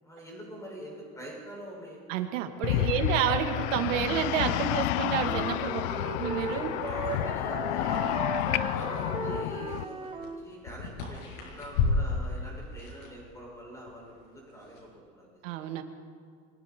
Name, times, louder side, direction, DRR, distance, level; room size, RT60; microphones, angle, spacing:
voice 1, 0.0-2.0 2.7-2.8 5.7-6.3 6.8-8.0 8.6-15.6, right 1 dB, 10° left, -3 dB, 6.7 m, -44 dB
voice 2, 2.1-5.8 6.2-6.7 15.4-15.8, right 10 dB, 85° right, 5 dB, 2.4 m, -29 dB
sound 1, 2.6-9.9, left 16 dB, 65° left, 0.7 m, -30 dB
sound 2, 5.2-10.4, right 4 dB, 15° right, 1.1 m, -37 dB
sound 3, 6.2-14.9, left 4 dB, 85° left, 7.3 m, -36 dB
28.5 x 23.5 x 4.6 m, 2.1 s
cardioid pair, 170°, 37 cm